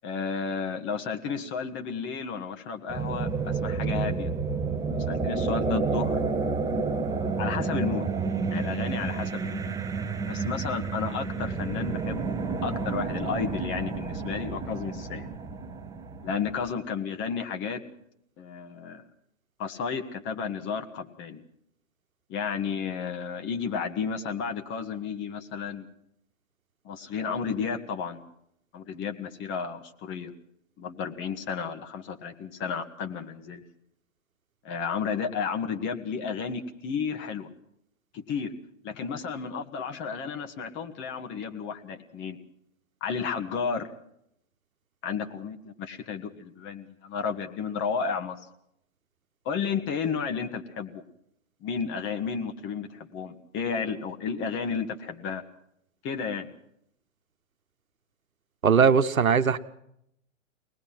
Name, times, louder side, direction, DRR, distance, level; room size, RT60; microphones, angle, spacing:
voice 1, 0.0-4.3 5.1-6.2 7.4-8.1 8.5-9.7 10.3-15.3 16.2-17.8 18.4-19.0 19.6-21.4 22.3-25.9 26.8-28.2 28.7-30.3 30.8-33.6 34.6-37.5 38.1-38.5 38.8-42.4 43.0-43.9 45.0-48.4 49.5-51.0 51.6-55.4 56.0-56.5, left 6 dB, 30° left, 7 dB, 1.9 m, -32 dB
sound 1, 2.9-16.7, right 4 dB, 10° right, 1.1 m, -30 dB
voice 2, 58.6-59.6, right 6 dB, 85° right, 9 dB, 1.1 m, -20 dB
23.5 x 19.5 x 6.0 m, 0.74 s
figure-of-eight pair, 115°, 41 cm